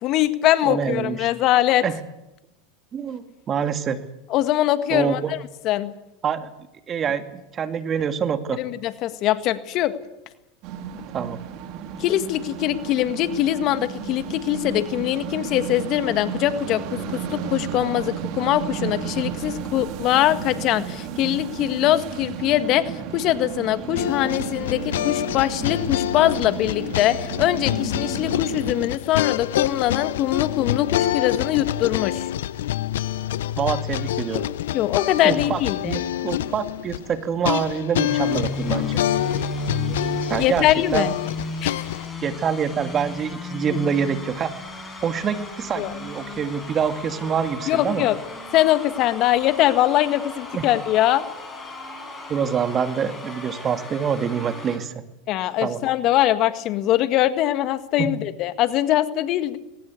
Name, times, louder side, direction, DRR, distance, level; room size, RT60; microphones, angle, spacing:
voice 1, 0.0-1.8 4.3-5.4 5.6-5.9 8.6-9.9 12.0-32.3 34.7-36.0 39.9-40.1 40.4-41.1 41.6-41.8 45.8-45.9 47.7-48.2 48.5-51.2 55.3-59.6, left 13 dB, 50° left, 11 dB, 1.7 m, -22 dB
voice 2, 0.7-1.3 1.8-2.0 2.9-4.0 4.9-5.3 6.2-6.5 6.9-8.6 11.1-11.4 33.6-34.5 35.2-39.0 40.3-41.1 42.2-44.5 45.0-48.1 50.5-50.7 52.3-54.9 55.6-55.8 58.0-58.1, right 7 dB, 35° right, 8 dB, 2.2 m, -26 dB
sound 1, 10.6-28.9, right 8 dB, 55° right, 3.0 m, -33 dB
sound 2, 24.0-42.1, left 12 dB, 80° left, 0.7 m, -27 dB
sound 3, 38.1-54.8, left 2 dB, 20° left, 7.3 m, -35 dB
20.5 x 18.5 x 8.4 m, 0.92 s
hypercardioid pair, 100°, 0 cm